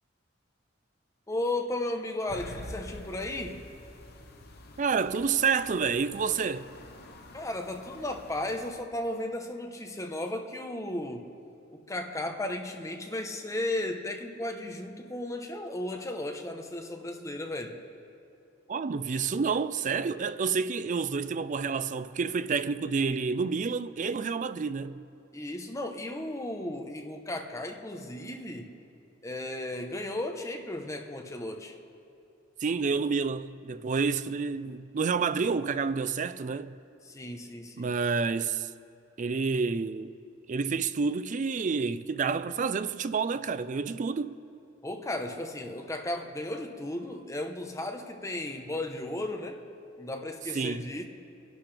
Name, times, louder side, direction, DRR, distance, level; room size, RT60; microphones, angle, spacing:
voice 1, 1.3-3.6 7.3-11.3 11.7-17.8 25.3-28.7 29.2-31.8 37.1-37.9 44.8-49.6 50.0-51.0, left 1 dB, 15° left, 1.0 m, -35 dB
sound 1, 2.3-8.8, left 1 dB, 55° left, 1.0 m, -47 dB
voice 2, 4.8-6.7 18.7-25.0 32.6-36.8 37.8-38.7 39.2-40.1 40.5-44.4 50.5-50.8, right 5 dB, 40° right, 0.4 m, -29 dB
23.5 x 11.5 x 3.5 m
head